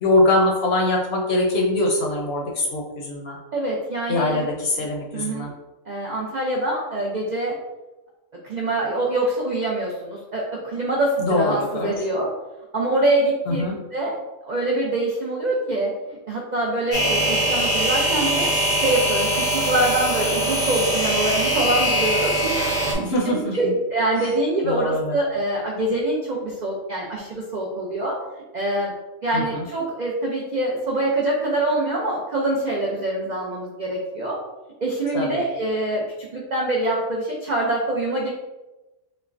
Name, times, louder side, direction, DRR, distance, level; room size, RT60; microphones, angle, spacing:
voice 1, 0.0-3.4 4.1-5.5 11.2-11.9 13.5-13.7 22.9-23.7 24.6-25.2 29.3-29.6 35.1-35.3, left 2 dB, 60° left, -1 dB, 0.7 m, -22 dB
voice 2, 3.5-4.5 5.1-5.5 5.9-7.6 8.4-12.3 12.7-13.6 13.9-14.1 14.4-28.2 28.5-28.9 29.2-34.4 34.8-38.3, right 1 dB, 65° right, -2 dB, 0.4 m, -25 dB
sound 1, 16.9-22.9, right 1 dB, 30° left, 0.6 m, -22 dB
5.5 x 2.1 x 2.5 m, 1.1 s
omnidirectional pair, 1.4 m